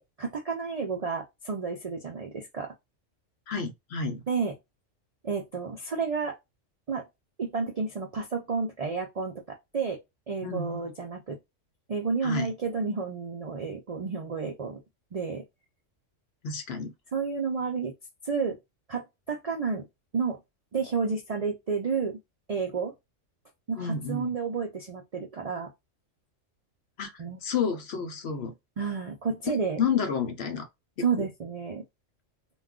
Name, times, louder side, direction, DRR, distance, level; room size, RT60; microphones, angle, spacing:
voice 1, 0.0-2.7 4.3-4.5 5.2-6.3 6.9-7.0 7.4-10.0 10.3-11.4 11.9-14.8 15.1-15.4 17.1-17.9 18.2-18.6 18.9-19.8 20.1-20.4 20.7-22.2 22.5-22.9 23.7-25.7 27.2-27.4 28.8-29.8 31.0-31.8, right 5 dB, 60° right, 0.4 m, -31 dB
voice 2, 3.5-4.2 10.4-10.8 12.2-12.5 16.4-16.9 23.8-24.3 27.0-28.5 29.5-30.7 31.2-31.3, left 6 dB, 60° left, 0.8 m, -30 dB
2.3 x 2.2 x 3.6 m
omnidirectional pair, 1.3 m